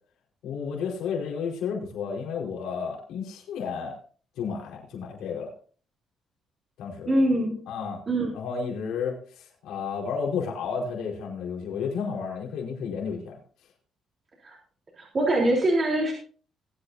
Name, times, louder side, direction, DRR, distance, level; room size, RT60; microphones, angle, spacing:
voice 1, 0.4-3.9 4.4-5.5 6.8-7.1 7.7-8.0 8.3-13.4, left 6 dB, 90° left, -2 dB, 4.5 m, -32 dB
voice 2, 7.1-7.6 8.1-8.3 14.4-14.6 15.0-16.1, right 1 dB, 40° right, -2 dB, 3.7 m, -23 dB
20.0 x 8.7 x 2.7 m, 0.41 s
cardioid pair, 90°, 0 cm